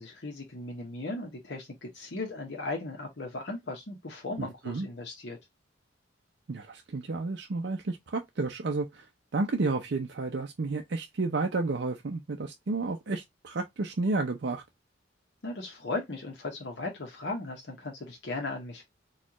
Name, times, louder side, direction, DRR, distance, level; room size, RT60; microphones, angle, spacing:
voice 1, 0.0-5.4 15.4-18.8, left 2 dB, 60° left, 0.9 m, -37 dB
voice 2, 4.4-4.9 6.5-9.1 9.3-14.6, right 3 dB, 60° right, 0.5 m, -31 dB
4.2 x 2.4 x 2.9 m
head